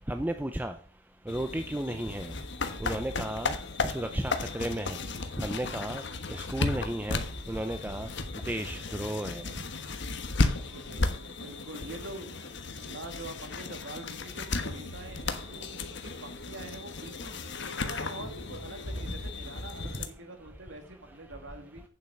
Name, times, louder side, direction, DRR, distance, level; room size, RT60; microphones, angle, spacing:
voice 1, 0.1-0.7 1.3-2.3 2.8-3.5 3.8-5.0 5.4-6.0 6.3-7.2 7.5-8.1 8.5-9.4, right 1 dB, 10° right, 0.6 m, -33 dB
sound 1, 1.3-20.1, left 3 dB, 60° left, 1.3 m, -35 dB
voice 2, 10.7-11.1 11.4-12.3 12.8-17.4 17.7-21.8, right 2 dB, 65° right, 2.2 m, -45 dB
8.8 x 7.4 x 6.3 m
head